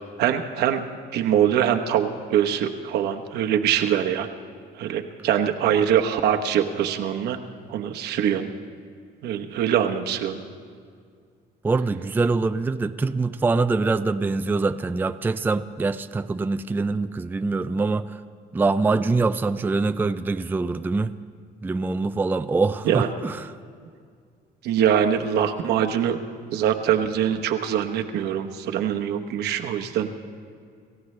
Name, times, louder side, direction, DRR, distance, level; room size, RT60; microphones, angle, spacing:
voice 1, 0.2-0.8 1.1-4.3 4.8-7.4 7.7-8.5 9.2-10.4 22.8-23.1 24.6-26.2 26.5-30.1, right 9 dB, 75° right, 5 dB, 1.1 m, -23 dB
voice 2, 11.6-18.2 18.5-21.1 21.6-23.5, right 3 dB, 10° right, 10 dB, 0.4 m, -24 dB
27.5 x 15.0 x 3.3 m, 2.1 s
cardioid pair, 110°, 17 cm